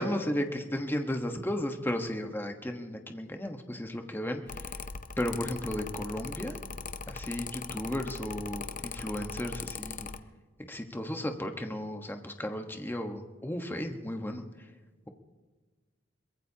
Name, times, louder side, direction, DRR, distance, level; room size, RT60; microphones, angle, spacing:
voice 1, 0.0-4.8 5.2-6.5 7.1-10.1 10.7-14.4, left 1 dB, 10° left, 5 dB, 1.2 m, -34 dB
Mechanical fan, 4.5-10.2, left 5 dB, 45° left, 0.7 m, -40 dB
23.0 x 21.0 x 2.9 m, 1.4 s
head